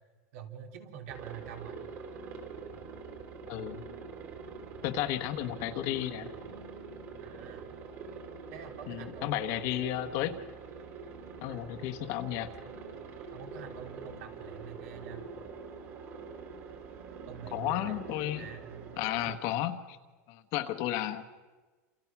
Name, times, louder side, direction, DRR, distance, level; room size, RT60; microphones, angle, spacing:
voice 1, 0.3-1.8 7.2-7.7 8.5-9.9 11.5-11.8 13.3-15.2 17.3-18.9, right 8 dB, 65° right, 5 dB, 3.4 m, -46 dB
Aircraft, 1.1-19.4, right 5 dB, 30° right, 3.0 m, -45 dB
voice 2, 3.5-3.8 4.8-6.3 8.9-10.4 11.4-12.5 17.5-18.5 19.0-20.0 20.3-21.2, left 13 dB, 40° left, 10 dB, 1.2 m, -33 dB
28.5 x 28.0 x 6.0 m, 1.3 s
supercardioid pair, 175°, 8 cm